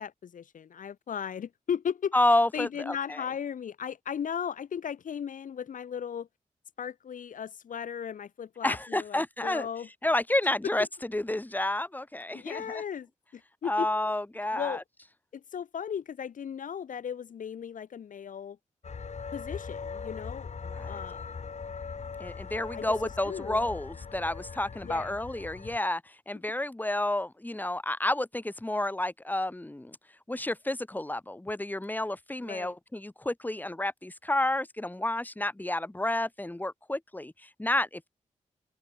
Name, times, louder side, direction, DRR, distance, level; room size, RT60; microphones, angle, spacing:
voice 1, 0.0-2.1 2.5-6.3 6.8-9.9 12.3-13.9 14.5-14.8 15.3-18.6 19.3-20.5 20.9-21.3 22.7-23.0 23.2-23.7 24.8-25.2 32.4-32.8, left 8 dB, 75° left, 1.0 m, -36 dB
voice 2, 2.1-3.2 8.6-9.7 10.0-10.9 11.1-12.8 13.6-14.8 20.6-21.0 22.2-30.0 30.3-38.1, left 1 dB, 15° left, 1.6 m, -30 dB
sound 1, 18.8-25.8, left 5 dB, 55° left, 2.7 m, -40 dB
open air
cardioid pair, 55°, 14 cm